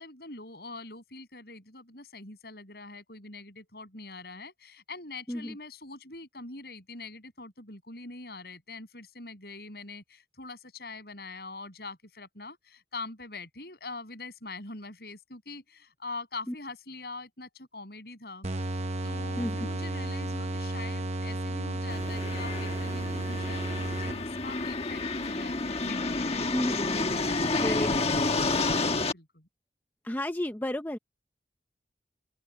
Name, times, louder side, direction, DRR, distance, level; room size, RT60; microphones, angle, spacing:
voice 1, 0.0-26.6 27.1-28.1 28.5-29.5, left 3 dB, 60° left, 7.3 m, -44 dB
sound 1, 18.4-24.5, right 1 dB, 40° right, 0.9 m, -33 dB
sound 2, 21.9-29.1, left 3 dB, 35° left, 1.3 m, -30 dB
voice 2, 26.5-28.0 30.0-31.0, left 1 dB, 10° left, 0.5 m, -32 dB
open air
head